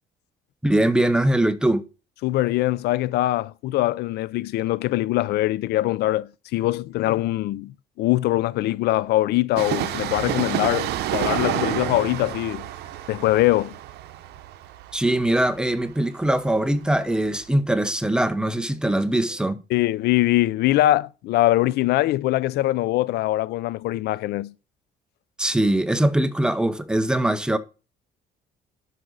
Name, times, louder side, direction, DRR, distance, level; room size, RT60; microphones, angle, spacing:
voice 1, 0.6-1.8 14.9-19.6 25.4-27.6, right 1 dB, 5° right, 0.8 m, -22 dB
voice 2, 2.2-12.7 13.1-13.8 19.7-24.5, left 16 dB, 75° left, 0.5 m, -22 dB
Train, 9.5-17.0 17.2-17.3, right 12 dB, 75° right, 0.8 m, -29 dB
11.0 x 6.3 x 4.0 m
cardioid pair, 110°, 17 cm